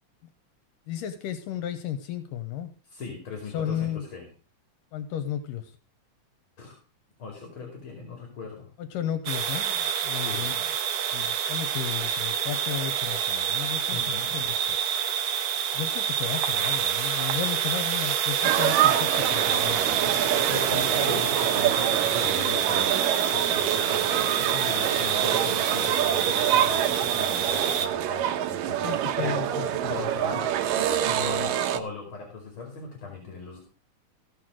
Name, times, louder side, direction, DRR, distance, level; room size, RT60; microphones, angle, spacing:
voice 1, 0.9-2.7 3.5-4.1 4.9-5.8 8.8-10.6 11.1-14.8 15.2-15.5 15.7-19.9 24.4-24.7 28.8-30.4, left 10 dB, 80° left, 10 dB, 2.5 m, -34 dB
voice 2, 2.9-4.3 6.6-6.8 7.2-8.7 10.1-10.5 13.9-14.3 20.0-23.0 23.3-24.3 24.6-29.4 29.9-30.5 31.0-33.6, left 5 dB, 40° left, 2 dB, 3.2 m, -39 dB
sound 1, 9.3-27.9, right 8 dB, 70° right, 2.5 m, -27 dB
sound 2, 18.4-31.8, right 11 dB, 90° right, 2.5 m, -26 dB
15.5 x 6.7 x 6.2 m, 0.37 s
omnidirectional pair, 3.8 m